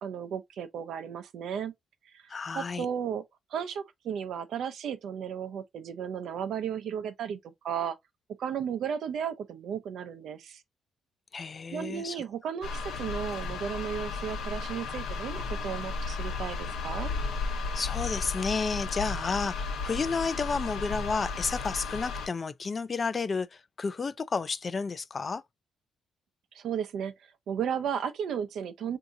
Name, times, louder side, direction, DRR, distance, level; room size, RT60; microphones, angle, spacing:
voice 1, 0.0-1.7 2.1-2.2 2.5-3.2 3.5-8.0 8.4-10.6 11.7-17.1 26.5-29.0, right 8 dB, 70° right, 0.6 m, -34 dB
voice 2, 2.3-2.9 11.3-12.2 17.7-25.4, left 4 dB, 35° left, 0.4 m, -31 dB
sound 1, 12.6-22.3, left 4 dB, 80° left, 0.8 m, -34 dB
3.6 x 2.7 x 2.6 m
cardioid pair, 90°, 0 cm